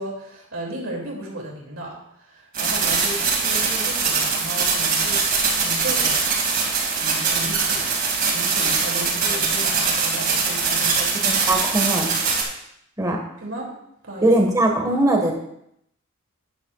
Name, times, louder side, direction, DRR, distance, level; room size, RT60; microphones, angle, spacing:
voice 1, 0.0-5.2 5.5-6.3 7.0-11.4 13.1-13.7 14.0-14.3, right 1 dB, 85° right, -2 dB, 2.8 m, -35 dB
sound 1, 2.5-12.4, right 5 dB, 45° right, 2.5 m, -22 dB
voice 2, 11.3-12.2 13.0-13.2 14.2-15.3, right 1 dB, 15° right, 1 dB, 1.7 m, -20 dB
13.0 x 10.0 x 2.5 m, 0.76 s
head